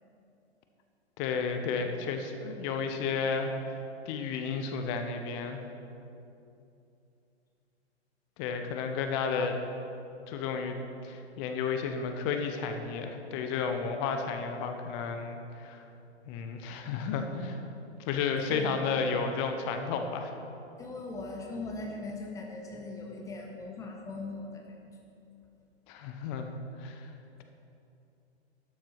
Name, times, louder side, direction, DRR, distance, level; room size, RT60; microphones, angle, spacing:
voice 1, 1.2-3.5 4.1-5.6 8.4-9.5 10.3-10.8 11.0-15.8 16.3-17.7 18.1-20.3 25.9-26.5 26.8-27.1, left 5 dB, 25° left, 6 dB, 0.8 m, -32 dB
voice 2, 18.4-19.0 20.8-24.6, left 3 dB, 10° left, 1 dB, 1.1 m, -40 dB
12.0 x 7.4 x 5.8 m, 2.8 s
figure-of-eight pair, 115°, 34 cm